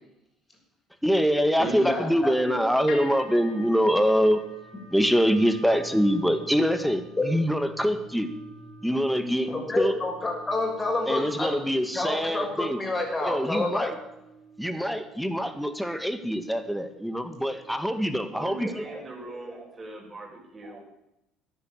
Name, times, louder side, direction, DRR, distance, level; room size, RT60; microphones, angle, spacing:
voice 1, 1.0-4.4 4.9-8.3 8.8-9.9 11.1-12.8 13.2-14.0 14.6-18.7, equal, ahead, 9 dB, 2.0 m, -24 dB
voice 2, 1.6-2.5 7.2-7.3 9.5-11.5 11.9-13.9, left 2 dB, 25° left, 1 dB, 6.4 m, -28 dB
sound 1, 2.9-19.1, equal, 65° left, 6.2 m, -48 dB
voice 3, 18.2-20.8, right 2 dB, 25° right, 0 dB, 6.9 m, -40 dB
13.5 x 9.9 x 8.6 m, 0.88 s
hypercardioid pair, 70°, 0 cm